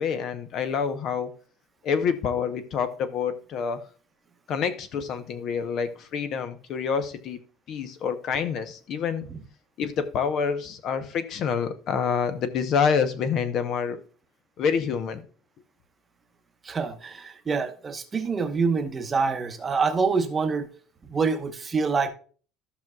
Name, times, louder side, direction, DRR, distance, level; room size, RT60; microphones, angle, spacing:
voice 1, 0.0-1.4 1.8-3.8 4.5-7.4 7.7-9.3 9.8-14.0 14.6-15.2, left 6 dB, 40° left, 0.8 m, -27 dB
voice 2, 16.6-20.7 21.1-22.1, right 5 dB, 15° right, 1.0 m, -26 dB
14.5 x 6.1 x 2.3 m
cardioid pair, 175°, 0 cm